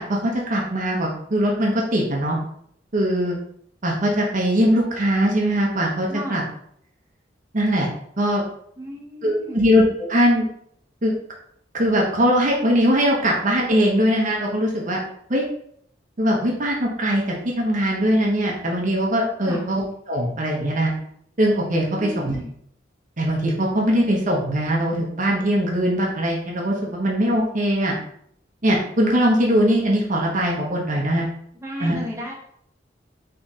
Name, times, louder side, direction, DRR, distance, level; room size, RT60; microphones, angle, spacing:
voice 1, 0.0-2.4 2.9-3.4 3.8-6.4 7.5-7.9 8.2-8.4 9.2-10.5 11.0-11.1 11.7-15.0 15.3-15.5 16.2-20.9 21.4-22.3 23.2-28.0 28.6-31.3 31.8-32.0, equal, 45° right, -1 dB, 0.9 m, -21 dB
voice 2, 6.1-6.5 8.8-9.6 19.4-19.6 21.9-22.5 31.6-32.3, equal, 15° right, -3 dB, 1.0 m, -33 dB
4.1 x 3.3 x 3.6 m, 0.67 s
head